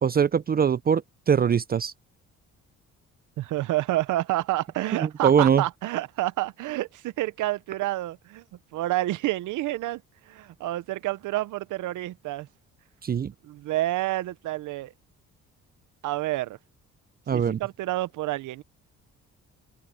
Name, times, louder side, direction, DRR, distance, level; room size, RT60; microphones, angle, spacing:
voice 1, 0.0-1.9 5.0-5.6 13.0-13.3 17.3-17.6, right 7 dB, 30° right, 0.5 m, -22 dB
voice 2, 3.4-8.4 8.7-12.5 13.4-14.9 16.0-16.6 17.3-18.6, right 16 dB, 80° right, 0.8 m, -29 dB
cardioid pair, 90°, 30 cm